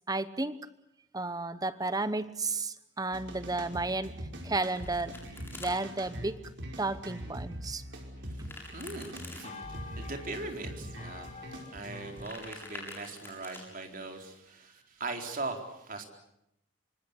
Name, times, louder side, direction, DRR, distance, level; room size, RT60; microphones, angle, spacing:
voice 1, 0.1-0.6 1.1-4.1 4.4-5.1 5.6-6.4 6.8-7.8, right 3 dB, 20° right, 13 dB, 0.9 m, -32 dB
sound 1, 3.1-12.3, right 1 dB, 65° right, 5.3 m, -43 dB
Domestic sounds home sounds, 4.3-5.7 8.3-9.4 12.0-13.6, left 2 dB, 10° left, 7.7 m, -47 dB
sound 2, 8.5-14.3, left 4 dB, 35° left, 3.4 m, -51 dB
voice 2, 8.7-16.0, right 3 dB, 45° right, 4 dB, 4.3 m, -40 dB
26.0 x 25.5 x 8.3 m, 0.82 s
head